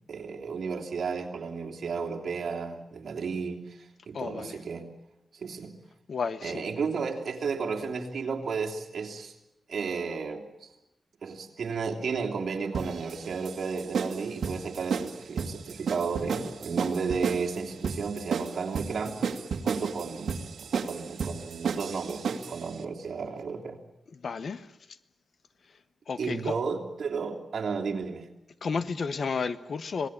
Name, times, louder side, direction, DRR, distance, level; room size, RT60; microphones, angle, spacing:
voice 1, 0.1-4.9 5.3-5.7 6.4-9.3 9.7-10.7 11.2-20.4 20.7-23.8 26.2-28.2, right 5 dB, 65° right, 3.2 m, -33 dB
voice 2, 4.1-4.6 6.1-6.6 24.1-24.7 26.1-26.5 28.6-30.1, left 5 dB, 55° left, 1.0 m, -32 dB
sound 1, 12.7-22.6, right 6 dB, 85° right, 1.8 m, -33 dB
26.5 x 19.0 x 8.8 m
wide cardioid pair, 140°, 0 cm